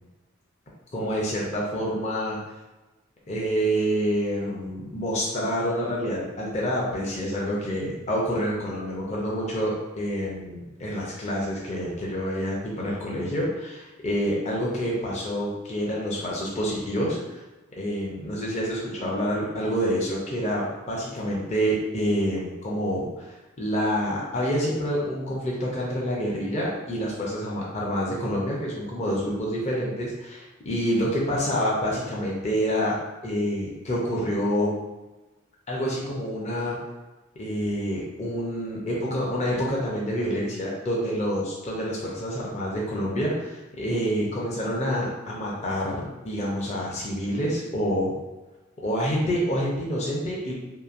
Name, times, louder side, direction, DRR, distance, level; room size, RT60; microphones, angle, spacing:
voice 1, 0.9-2.4 3.3-17.4 17.8-33.0 33.2-34.7 35.7-36.8 37.4-48.2 48.8-50.5, equal, 30° left, -4 dB, 0.5 m, -27 dB
2.9 x 2.5 x 2.5 m, 1.1 s
head